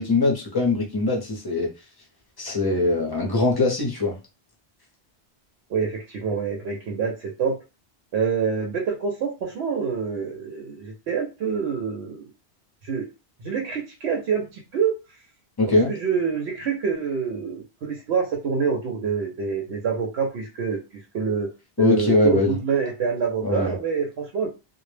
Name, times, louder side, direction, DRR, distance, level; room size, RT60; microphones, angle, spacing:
voice 1, 0.0-1.7 2.4-4.2 15.6-15.9 21.8-22.5 23.4-23.7, left 2 dB, 25° left, -1 dB, 0.6 m, -22 dB
voice 2, 5.7-7.6 8.1-12.3 12.8-13.1 13.4-14.9 15.9-21.5 21.8-24.5, right 6 dB, 90° right, 0 dB, 0.9 m, -26 dB
2.1 x 2.0 x 3.1 m, 0.28 s
omnidirectional pair, 1.1 m